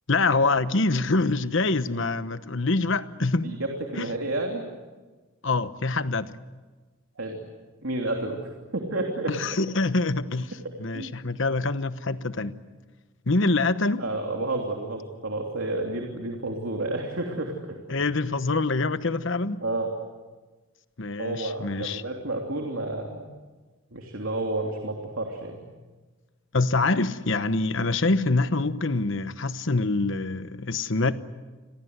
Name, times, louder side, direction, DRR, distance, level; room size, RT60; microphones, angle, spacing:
voice 1, 0.1-3.5 4.0-4.1 5.4-6.3 9.3-10.5 10.8-12.5 13.3-14.0 17.9-19.6 21.0-22.0 26.5-31.1, left 3 dB, 60° left, 1.1 m, -25 dB
voice 2, 3.4-4.6 7.2-7.4 7.8-9.3 10.9-11.1 14.0-17.8 19.6-19.9 21.2-23.2 23.9-25.7, right 2 dB, 70° right, 3.2 m, -30 dB
29.0 x 22.5 x 8.1 m
head